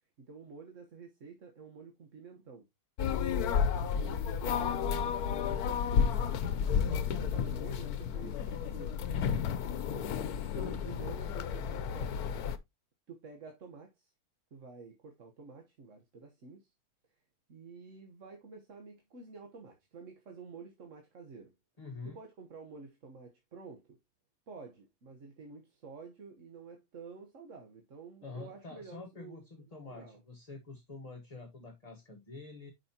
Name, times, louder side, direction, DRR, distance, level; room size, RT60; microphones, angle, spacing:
voice 1, 0.2-2.7 3.9-6.6 6.9-8.9 9.9-12.2 13.1-14.1 14.5-16.7 17.5-21.5 22.0-24.0 24.5-30.2, right 4 dB, 60° right, 1.5 m, -50 dB
sound 1, 3.0-12.6, left 7 dB, 90° left, 1.2 m, -32 dB
voice 2, 3.8-4.3 21.8-22.2 28.2-32.7, left 3 dB, 30° left, 1.2 m, -47 dB
9.3 x 5.5 x 2.8 m
omnidirectional pair, 1.5 m